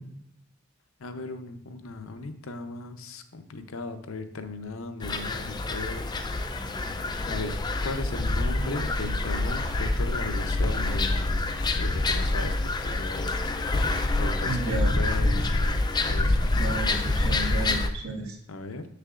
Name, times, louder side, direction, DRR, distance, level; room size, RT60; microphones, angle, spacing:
voice 1, 1.0-6.1 7.3-11.3 11.8-12.6 12.8-13.4 13.7-16.6 18.5-18.9, left 2 dB, 65° left, 9 dB, 0.6 m, -37 dB
sound 1, 5.0-17.9, left 2 dB, 20° left, 0.3 m, -26 dB
voice 2, 14.4-14.9 16.6-18.4, right 2 dB, 85° right, 0 dB, 1.5 m, -32 dB
7.5 x 6.6 x 2.4 m, 0.77 s
head